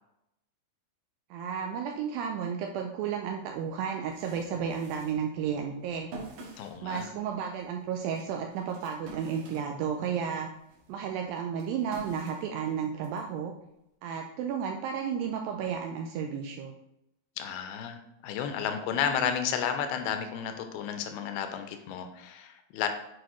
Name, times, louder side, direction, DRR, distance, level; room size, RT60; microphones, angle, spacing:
voice 1, 1.3-6.1 6.8-10.5 10.9-13.5 14.0-16.7, right 7 dB, 80° right, 3 dB, 2.2 m, -33 dB
sound 1, 3.3-3.4 3.8-10.2 10.6-13.2, right 3 dB, 65° right, 2.8 m, -48 dB
voice 2, 6.6-7.1 17.4-22.9, left 8 dB, 90° left, 7 dB, 2.6 m, -32 dB
8.3 x 4.8 x 3.0 m, 0.82 s
omnidirectional pair, 4.3 m